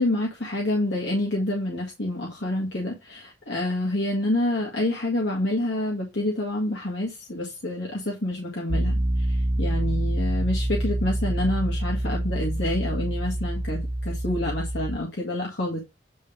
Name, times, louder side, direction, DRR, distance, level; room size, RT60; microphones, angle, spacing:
voice 1, 0.0-15.8, left 1 dB, 70° left, -2 dB, 2.0 m, -28 dB
Piano, 8.7-15.0, right 1 dB, 10° right, 0.4 m, -26 dB
9.2 x 3.4 x 5.0 m, 0.24 s
head